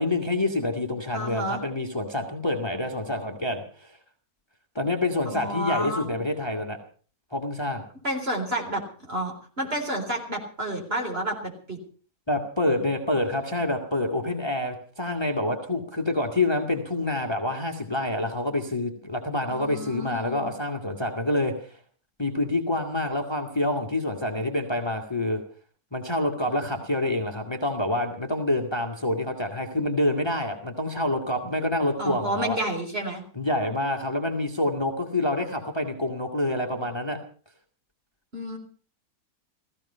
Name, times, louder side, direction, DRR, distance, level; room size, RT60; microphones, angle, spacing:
voice 1, 0.0-4.0 4.8-6.8 7.3-7.9 12.3-21.7 22.2-25.4 25.9-32.6 33.4-37.2, left 1 dB, 15° left, 2 dB, 1.8 m, -27 dB
voice 2, 1.1-1.6 5.3-6.2 8.0-11.8 19.5-20.5 32.0-33.2 38.3-38.6, right 1 dB, 40° right, 1 dB, 4.3 m, -30 dB
16.0 x 15.5 x 5.6 m, 0.42 s
omnidirectional pair, 1.6 m